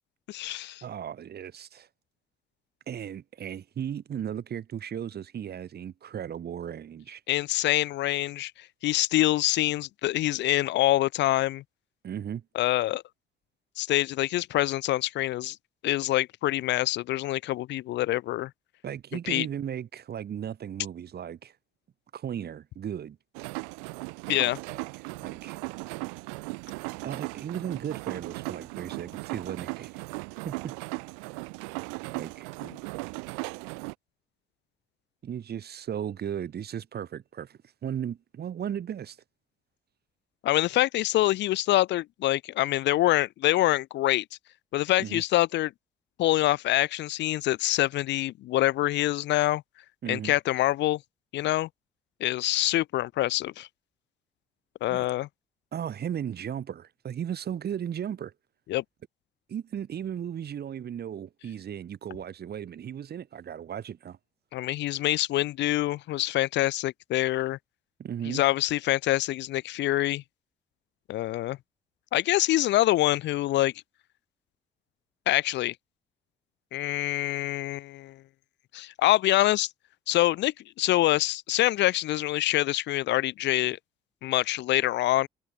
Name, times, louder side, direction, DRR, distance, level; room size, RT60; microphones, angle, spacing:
voice 1, 0.3-0.8 7.3-11.6 12.5-13.0 13.8-15.6 15.8-18.5 19.3-19.5 24.3-24.6 40.4-44.2 44.7-45.7 46.2-49.6 50.1-51.0 51.3-51.7 52.2-53.7 54.8-55.3 58.7-58.8 64.5-67.6 68.3-70.2 71.1-71.6 72.1-73.7 75.3-75.7 76.7-78.2 78.7-79.7 80.1-83.8 84.2-85.3, left 15 dB, 75° left, 0.9 m, -25 dB
voice 2, 0.8-1.9 2.9-7.2 12.0-12.4 18.8-21.5 22.1-23.2 24.7-24.9 25.2-25.6 27.0-29.9 30.4-30.7 32.1-32.5 35.2-39.2 45.0-45.2 50.0-50.3 54.9-55.1 55.7-58.3 59.5-64.2 68.0-68.4, right 9 dB, 60° right, 4.3 m, -36 dB
sound 1, 23.3-33.9, right 40 dB or more, 90° right, 0.7 m, -37 dB
supercardioid pair, 55°, 19 cm